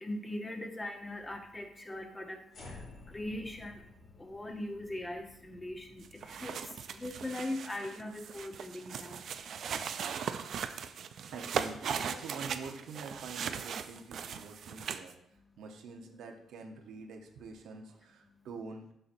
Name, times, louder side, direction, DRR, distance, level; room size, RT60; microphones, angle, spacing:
voice 1, 0.0-2.4 2.7-2.8 3.1-3.7 4.2-6.0 6.3-6.5 6.9-9.2, left 1 dB, 15° left, 4 dB, 0.9 m, -40 dB
sound 1, 2.5-8.8, left 2 dB, 70° left, 2.2 m, -54 dB
sound 2, 6.0-15.1, right 7 dB, 65° right, 0.4 m, -38 dB
voice 2, 11.3-15.1 15.6-18.9, right 4 dB, 80° right, 2 dB, 0.9 m, -46 dB
6.6 x 5.8 x 2.6 m, 0.75 s
cardioid pair, 90°, 0 cm